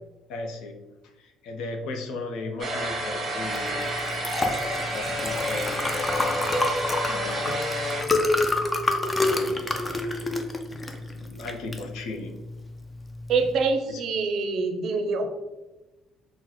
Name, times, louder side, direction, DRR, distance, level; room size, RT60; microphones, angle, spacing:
voice 1, 0.3-4.1 4.8-6.7 7.1-7.6 9.2-10.3 10.7-12.4 13.9-14.0, left 3 dB, 80° left, 3 dB, 0.5 m, -37 dB
sound 1, 2.6-8.0, equal, 30° right, 0.8 m, -30 dB
Liquid, 3.5-13.7, left 2 dB, 15° left, 0.4 m, -28 dB
voice 2, 13.3-15.3, right 4 dB, 60° right, 6 dB, 0.5 m, -25 dB
3.8 x 2.0 x 3.0 m, 1.1 s
cardioid pair, 125°, 0 cm